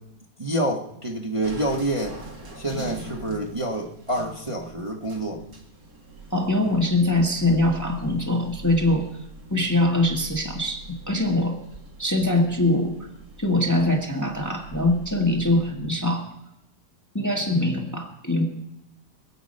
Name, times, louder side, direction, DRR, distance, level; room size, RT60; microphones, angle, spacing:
voice 1, 0.4-2.2 2.6-5.4, right 1 dB, 20° right, -1 dB, 1.5 m, -27 dB
sound 1, 1.4-15.7, right 2 dB, 60° right, 2.5 m, -43 dB
voice 2, 6.3-9.1 9.5-11.6 12.0-13.1 13.4-16.3 17.1-18.5, left 1 dB, 10° left, 1 dB, 1.5 m, -23 dB
24.5 x 8.3 x 5.4 m, 0.86 s
omnidirectional pair, 1.8 m